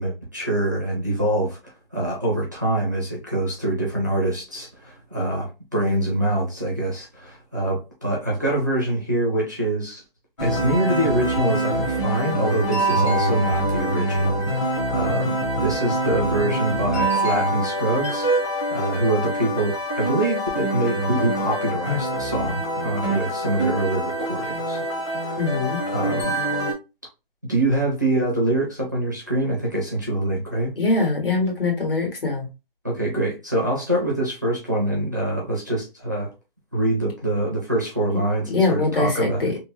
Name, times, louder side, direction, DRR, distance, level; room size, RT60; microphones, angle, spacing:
voice 1, 0.0-1.6 1.9-10.0 10.4-18.4 18.7-24.8 25.9-26.4 27.5-30.7 32.8-36.3 36.7-39.4, right 1 dB, 20° right, 0.5 m, -25 dB
sound 1, 10.4-26.7, right 1 dB, 30° left, 0.9 m, -25 dB
voice 2, 25.4-25.8 30.7-32.5 38.1-38.2 38.5-39.6, left 3 dB, 70° left, 1.7 m, -23 dB
3.1 x 2.1 x 2.9 m
hypercardioid pair, 170°, 29 cm